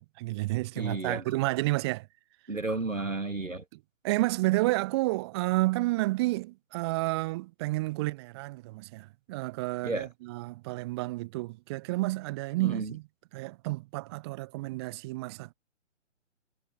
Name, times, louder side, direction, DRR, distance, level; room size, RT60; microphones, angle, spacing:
voice 1, 0.2-2.1 4.0-13.0 13.3-15.5, right 21 dB, 20° right, 1.0 m, -30 dB
voice 2, 0.8-1.2 2.5-3.6 9.8-10.1 12.6-12.9, right 2 dB, 85° right, 1.8 m, -32 dB
figure-of-eight pair, 130°, 38 cm